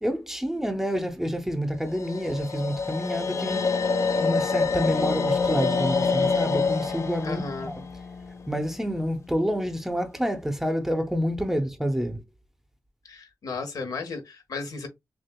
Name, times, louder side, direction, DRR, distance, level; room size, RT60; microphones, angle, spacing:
voice 1, 0.0-3.8 4.2-7.8 8.5-12.2, equal, 5° right, 0.6 m, -28 dB
sound 1, 1.9-9.0, left 4 dB, 50° left, 0.6 m, -27 dB
voice 2, 7.2-7.7 13.0-14.9, left 4 dB, 90° left, 1.3 m, -34 dB
6.3 x 2.4 x 2.2 m
wide cardioid pair, 135°, 6 cm